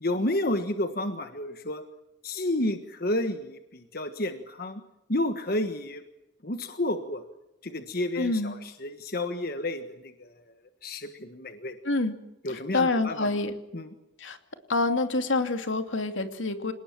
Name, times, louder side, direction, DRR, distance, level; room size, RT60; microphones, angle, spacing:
voice 1, 0.0-1.8 2.2-4.8 5.1-6.0 6.4-7.2 7.6-10.4 10.8-11.8 12.4-13.3 13.7-13.9, left 1 dB, 50° left, 8 dB, 1.4 m, -31 dB
voice 2, 8.2-8.6 11.8-12.2 12.5-13.6 14.2-14.4 14.7-16.7, left 2 dB, 85° left, 7 dB, 2.6 m, -27 dB
28.0 x 19.5 x 7.3 m, 0.93 s
head